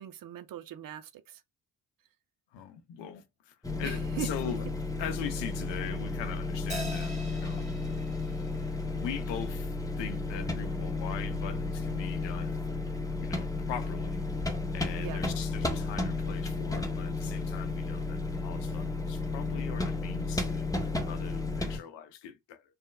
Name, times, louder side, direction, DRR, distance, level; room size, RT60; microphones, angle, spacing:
voice 1, 0.0-1.4 3.8-4.5 15.0-15.2, right 11 dB, 45° right, 0.6 m, -40 dB
voice 2, 2.5-4.6 5.0-7.7 8.6-12.6 13.2-14.2 14.7-22.6, left 8 dB, 70° left, 0.7 m, -41 dB
sound 1, 3.6-21.8, left 3 dB, 10° left, 0.7 m, -33 dB
Crash cymbal, 6.7-9.4, right 1 dB, 15° right, 1.5 m, -43 dB
3.1 x 2.1 x 2.3 m
hypercardioid pair, 50°, 46 cm